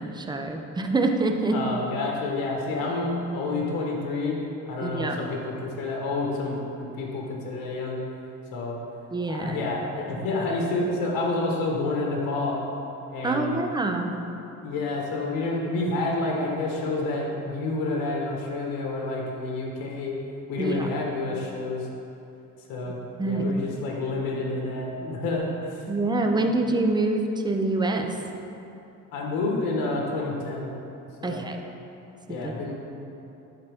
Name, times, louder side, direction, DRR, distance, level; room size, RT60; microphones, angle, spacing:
voice 1, 0.0-1.6 4.8-5.2 9.1-9.6 13.2-14.2 20.6-20.9 23.2-23.6 25.9-28.1 31.2-31.6 32.3-32.7, right 2 dB, 10° right, 4 dB, 0.6 m, -26 dB
voice 2, 1.5-4.4 4.7-6.6 6.9-8.0 8.5-8.8 9.3-12.6 13.1-13.6 14.6-20.2 20.5-21.9 22.7-23.0 23.2-25.8 26.2-26.3 29.1-30.8 31.2-31.4 32.3-32.7, left 2 dB, 75° left, -1 dB, 1.4 m, -29 dB
11.0 x 4.2 x 3.5 m, 2.8 s
cardioid pair, 90°, 35 cm